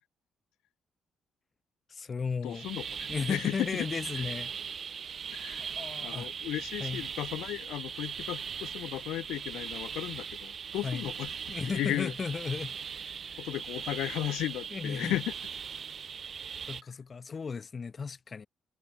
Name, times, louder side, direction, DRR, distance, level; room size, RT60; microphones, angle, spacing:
voice 1, 1.9-2.7 3.1-4.5 5.6-6.3 6.8-7.0 10.8-11.1 11.5-13.5 14.7-15.1 16.7-18.5, left 5 dB, 40° left, 1.1 m, -35 dB
voice 2, 2.4-3.9 4.1-4.2 5.3-5.7 6.0-11.3 11.7-12.1 13.4-15.3, left 15 dB, 90° left, 0.9 m, -35 dB
sound 1, 2.5-16.8, right 7 dB, 50° right, 1.5 m, -39 dB
cardioid pair, 90°, 0 cm